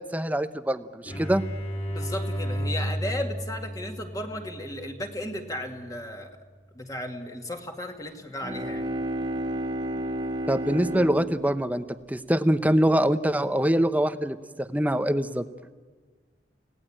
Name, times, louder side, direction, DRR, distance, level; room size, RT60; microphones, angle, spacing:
voice 1, 0.0-1.4 10.5-15.5, right 1 dB, 10° right, 11 dB, 0.8 m, -24 dB
sound 1, 1.1-6.6, equal, 35° left, 5.0 m, -34 dB
voice 2, 1.9-6.4 6.8-8.8, left 1 dB, 20° left, 4 dB, 2.3 m, -35 dB
Bowed string instrument, 8.2-12.9, right 1 dB, 25° right, 1.9 m, -32 dB
30.0 x 18.0 x 8.8 m, 1.5 s
head